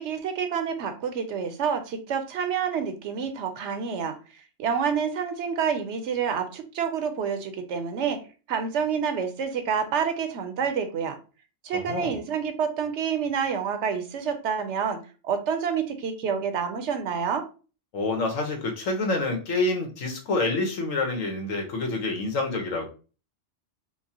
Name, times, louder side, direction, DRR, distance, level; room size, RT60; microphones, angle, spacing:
voice 1, 0.0-4.1 4.6-8.2 8.5-11.2 11.6-15.0 15.2-17.5, right 7 dB, 70° right, 7 dB, 0.9 m, -28 dB
voice 2, 11.7-12.1 17.9-22.9, left 2 dB, 85° left, 3 dB, 1.3 m, -27 dB
4.6 x 2.1 x 2.8 m, 0.34 s
omnidirectional pair, 1.3 m